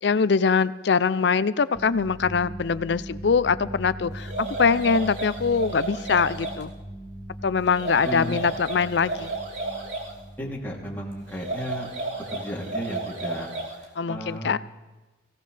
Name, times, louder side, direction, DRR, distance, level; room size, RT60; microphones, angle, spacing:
voice 1, 0.0-6.7 7.4-9.3 14.0-14.6, left 5 dB, 65° left, 16 dB, 0.5 m, -23 dB
sound 1, 1.7-12.5 13.1-13.4, right 1 dB, 10° right, 1.2 m, -41 dB
sound 2, 4.2-6.6 7.7-10.1 11.3-13.8, right 2 dB, 75° right, 2.9 m, -33 dB
voice 2, 8.0-8.4 10.4-11.9 12.3-13.5 13.8-14.6, equal, 10° left, -3 dB, 2.9 m, -34 dB
24.0 x 16.5 x 3.4 m, 1.2 s
head